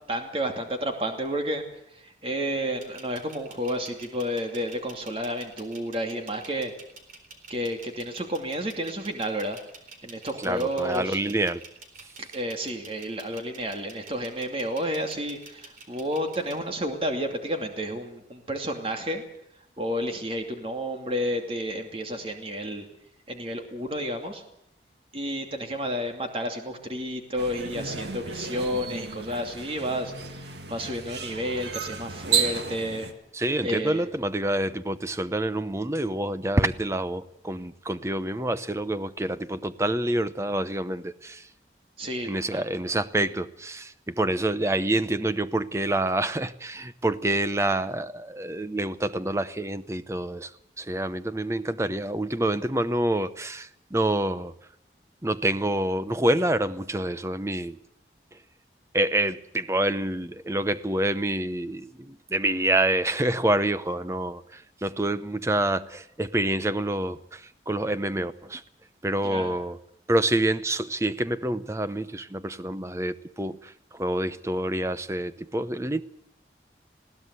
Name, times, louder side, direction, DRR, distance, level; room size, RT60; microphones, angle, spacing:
voice 1, 0.1-1.6 1.9-6.7 7.5-9.6 10.0-11.2 12.2-19.2 19.8-22.8 23.3-24.4 25.1-33.1 33.6-34.0 42.0-42.6 69.2-69.6, equal, 30° right, 2.6 m, -31 dB
sound 1, 2.8-16.6, right 4 dB, 45° right, 3.9 m, -48 dB
voice 2, 10.4-11.6 33.3-41.5 42.2-54.5 55.2-57.8 58.9-68.6 69.0-69.8 70.1-76.0, right 1 dB, 15° right, 0.8 m, -27 dB
sound 2, 27.4-33.1, right 6 dB, 75° right, 1.9 m, -32 dB
20.5 x 16.5 x 8.1 m
head